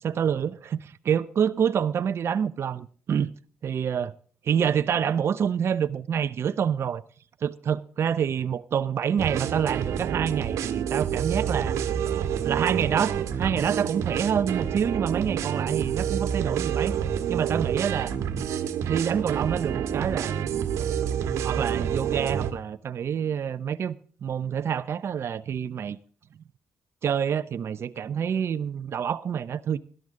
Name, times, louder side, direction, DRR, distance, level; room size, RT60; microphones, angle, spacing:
voice 1, 0.0-3.3 3.6-4.1 4.4-7.0 7.4-11.8 12.4-16.9 17.3-18.1 18.9-20.3 21.4-26.0 27.0-29.8, right 8 dB, 60° right, 0.6 m, -27 dB
sound 1, 9.2-22.5, right 9 dB, 80° right, 1.4 m, -28 dB
17.0 x 12.0 x 3.7 m
supercardioid pair, 65°, 5 cm